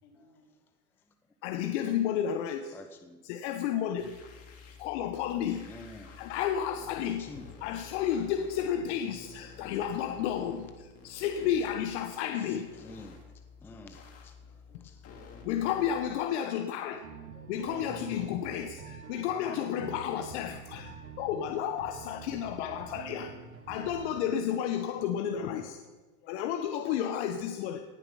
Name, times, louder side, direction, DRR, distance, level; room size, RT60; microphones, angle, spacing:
voice 1, 0.0-0.5 13.6-13.9 14.7-15.0 16.8-17.8 24.0-27.0, left 3 dB, 65° left, 0 dB, 3.9 m, -59 dB
voice 2, 1.4-2.8 3.2-4.1 4.8-5.6 6.2-7.3 7.6-12.7 15.4-17.0 17.5-25.8 26.3-27.8, left 9 dB, 45° left, 7 dB, 1.0 m, -32 dB
voice 3, 2.7-3.2 5.7-6.1 7.2-7.4 12.8-13.1 13.6-14.3 14.8-15.0, left 2 dB, 5° left, 7 dB, 0.5 m, -47 dB
sound 1, 4.0-8.7 8.9-11.8 12.1-12.2 12.5-16.0, left 5 dB, 30° left, 2.4 m, -51 dB
sound 2, 17.0-24.2, right 5 dB, 45° right, 2.4 m, -46 dB
18.0 x 6.9 x 5.6 m, 1.3 s
hypercardioid pair, 110°, 47 cm